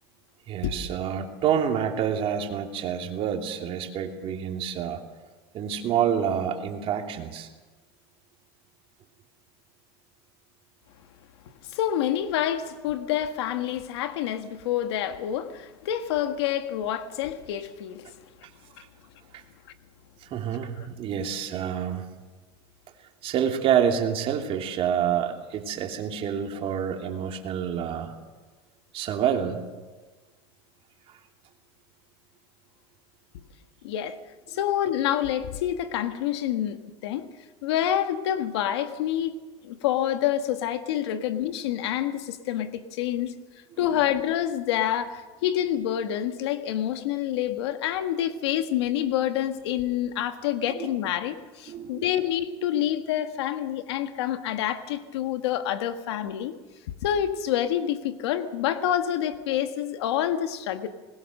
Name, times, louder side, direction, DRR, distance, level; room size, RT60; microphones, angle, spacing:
voice 1, 0.5-5.0 5.5-7.5 19.3-19.4 20.2-22.0 23.2-28.1 28.9-29.6 43.8-44.0 50.8-50.9 51.7-52.0, right 8 dB, 45° right, 2.9 m, -27 dB
voice 2, 11.6-18.1 20.8-20.9 33.8-34.2 34.5-37.3 37.6-43.3 43.8-56.5 57.0-60.9, left 11 dB, 90° left, 1.7 m, -27 dB
21.0 x 20.5 x 6.6 m
supercardioid pair, 125°, 14 cm